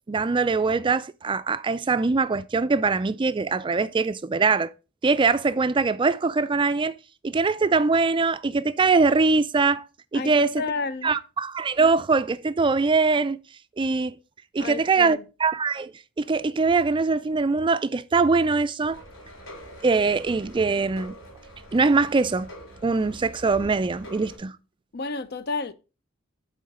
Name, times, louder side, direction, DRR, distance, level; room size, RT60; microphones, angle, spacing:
voice 1, 0.1-4.7 5.0-7.0 7.2-9.8 10.1-10.6 11.0-13.4 13.8-14.2 14.5-19.0 19.8-21.1 21.7-22.5 22.8-24.5, right 4 dB, 25° right, 0.4 m, -22 dB
voice 2, 10.1-11.1 14.6-15.2 24.9-25.7, left 3 dB, 50° left, 0.6 m, -31 dB
sound 1, 18.9-24.4, equal, 75° left, 3.3 m, -44 dB
8.6 x 3.8 x 5.2 m
head